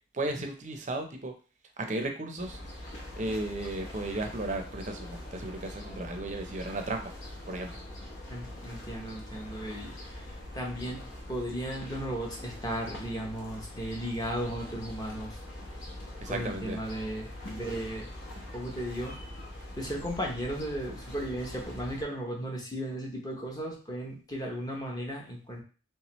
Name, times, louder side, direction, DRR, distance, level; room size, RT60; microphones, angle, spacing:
voice 1, 0.1-1.3 1.8-2.6 3.2-7.1 7.5-7.8 16.2-16.8, right 2 dB, 35° right, 5 dB, 0.5 m, -34 dB
sound 1, 2.4-22.0, left 1 dB, 60° left, 0.9 m, -43 dB
voice 2, 8.3-10.2 10.5-11.0 11.3-15.4 16.3-18.1 18.5-19.1 19.8-25.6, equal, 20° left, -1 dB, 0.8 m, -35 dB
3.3 x 3.1 x 3.0 m, 0.37 s
head